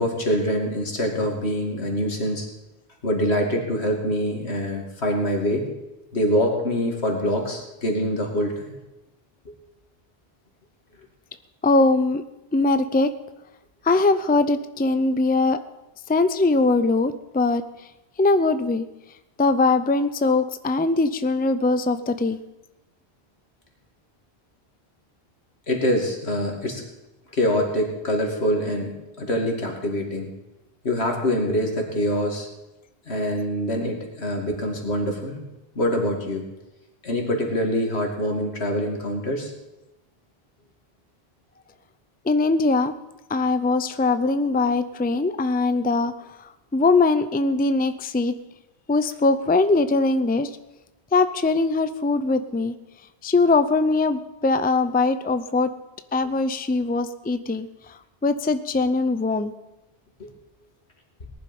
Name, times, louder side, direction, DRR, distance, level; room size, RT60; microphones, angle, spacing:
voice 1, 0.0-2.5 3.0-5.7 6.1-8.8 9.5-9.6 25.7-26.8 27.3-30.3 30.8-32.5 33.1-35.4 35.7-36.5 37.0-39.5 60.2-60.3, equal, 85° left, 1 dB, 2.8 m, -25 dB
voice 2, 11.6-12.2 12.5-13.1 13.8-15.6 16.1-17.6 18.2-18.8 19.4-22.4 42.2-42.9 43.3-46.1 46.4-48.3 48.9-50.6 51.1-52.7 53.2-55.7 56.1-59.5, left 3 dB, 10° left, 11 dB, 0.4 m, -21 dB
18.5 x 11.0 x 5.4 m, 0.98 s
omnidirectional pair, 1.1 m